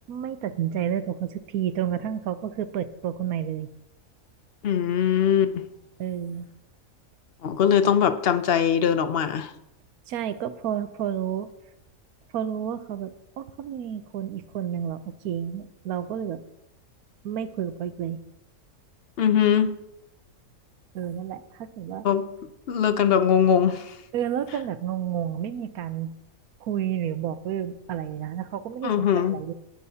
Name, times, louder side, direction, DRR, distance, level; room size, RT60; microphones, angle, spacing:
voice 1, 0.1-3.7 6.0-6.5 10.1-11.5 12.3-16.4 17.2-18.2 20.9-22.1 24.1-26.1 26.6-29.5, right 9 dB, 85° right, 11 dB, 1.2 m, -30 dB
voice 2, 4.6-5.6 7.4-9.5 19.2-19.7 22.0-22.3 22.7-24.0 28.8-29.4, left 8 dB, 55° left, 11 dB, 0.7 m, -21 dB
19.0 x 7.6 x 2.8 m, 0.85 s
omnidirectional pair, 1.5 m